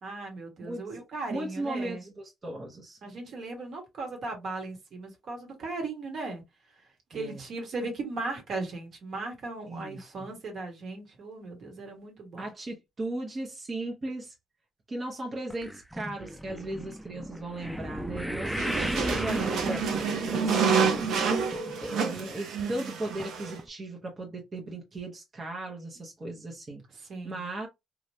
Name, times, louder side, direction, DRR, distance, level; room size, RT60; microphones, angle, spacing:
voice 1, 0.0-2.0 3.0-6.4 7.1-12.5 18.5-19.4 26.9-27.5, right 3 dB, 60° right, 1.3 m, -37 dB
voice 2, 1.3-3.0 7.1-7.4 9.7-10.1 12.4-14.3 14.9-19.8 20.3-21.1 21.8-26.8 27.2-27.7, right 2 dB, 35° right, 0.9 m, -36 dB
sound 1, 15.5-21.9 22.2-22.6 23.2-23.3 23.6-23.7, equal, 5° right, 0.3 m, -36 dB
sound 2, 18.5-23.6, right 5 dB, 75° right, 0.7 m, -28 dB
3.2 x 2.4 x 2.7 m
cardioid pair, 90°, 0 cm